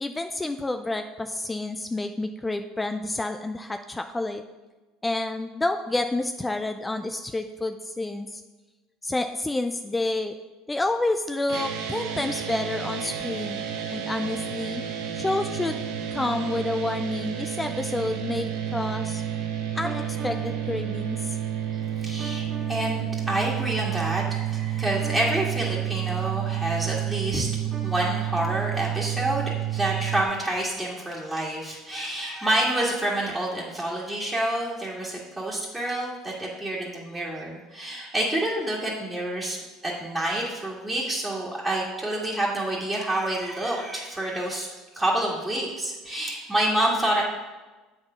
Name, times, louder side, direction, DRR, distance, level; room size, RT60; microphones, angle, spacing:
voice 1, 0.0-4.4 5.0-8.4 9.0-10.4 10.7-13.6 13.9-14.8 15.2-15.8 16.1-19.2 19.7-21.4, left 2 dB, 15° left, 7 dB, 0.4 m, -29 dB
sound 1, 11.5-30.2, right 10 dB, 75° right, 0.9 m, -30 dB
sound 2, 19.8-30.7, right 2 dB, 30° right, 1.0 m, -45 dB
voice 2, 22.0-27.5 27.8-39.6 39.8-44.7 44.9-47.2, right 1 dB, 10° right, -6 dB, 1.7 m, -28 dB
7.8 x 4.3 x 5.6 m, 1.2 s
supercardioid pair, 95°, 0 cm